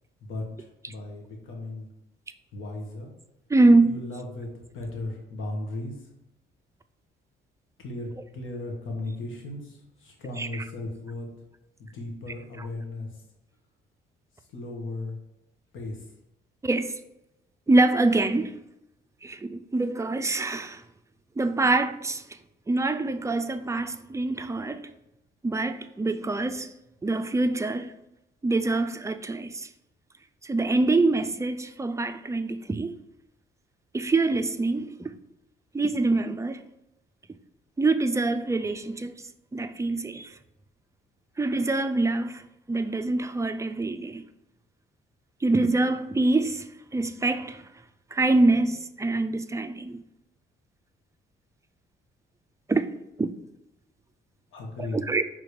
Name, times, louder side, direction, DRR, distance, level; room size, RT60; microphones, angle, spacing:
voice 1, 0.2-1.9 2.5-3.1 3.8-4.5 4.7-6.1 7.8-11.3 11.8-13.2 14.3-15.2 15.7-16.1 54.5-55.0, left 2 dB, 80° left, 1.5 m, -36 dB
voice 2, 3.5-3.9 10.4-10.5 16.6-16.9 17.7-18.5 19.2-20.8 21.4-22.2 22.7-24.9 25.4-26.7 27.0-27.9 28.4-29.7 30.4-33.0 33.9-35.1 35.7-36.6 37.8-39.1 39.5-40.3 41.4-42.4 42.7-44.2 45.4-47.6 48.1-50.0 52.7-52.9 53.2-53.3 54.9-55.2, right 2 dB, 15° right, 0.4 m, -25 dB
4.9 x 3.9 x 4.9 m
cardioid pair, 90°, 20 cm